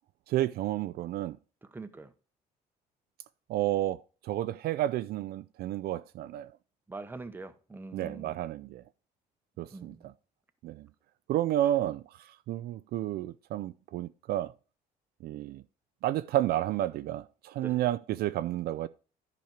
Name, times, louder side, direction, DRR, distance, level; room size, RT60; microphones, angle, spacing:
voice 1, 0.3-1.4 3.5-6.5 7.9-8.8 9.6-10.1 10.6-10.9 11.3-12.0 12.5-14.5 15.2-15.6 16.0-18.9, right 13 dB, 65° right, 0.4 m, -31 dB
voice 2, 1.7-2.1 6.9-8.4 9.7-10.1 17.6-17.8, right 3 dB, 10° right, 0.9 m, -43 dB
10.5 x 5.3 x 4.4 m
cardioid pair, 110°, 17 cm